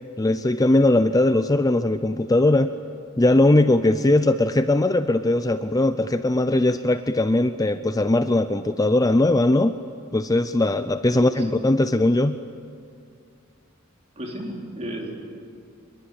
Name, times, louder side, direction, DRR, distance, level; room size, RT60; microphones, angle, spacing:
voice 1, 0.2-2.7 3.2-9.8 10.1-12.4, left 2 dB, 15° left, 11 dB, 0.5 m, -20 dB
voice 2, 11.1-11.7 14.2-15.3, equal, 30° right, -1 dB, 4.4 m, -33 dB
25.0 x 22.0 x 8.7 m, 2.3 s
head